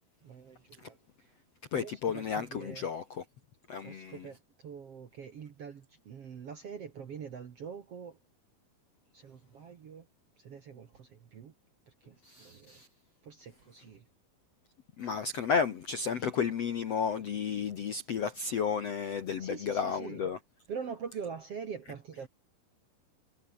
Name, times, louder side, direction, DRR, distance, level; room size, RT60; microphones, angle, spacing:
voice 1, 0.2-1.3 1.7-2.9 3.8-8.2 9.1-10.1 10.4-11.5 11.9-12.8 13.2-14.1 19.4-20.3 20.7-22.3, right 6 dB, 50° right, 1.9 m, -44 dB
voice 2, 1.7-3.2 3.7-4.2 12.2-12.9 15.0-20.4, left 6 dB, 60° left, 1.8 m, -32 dB
omnidirectional pair, 4.8 m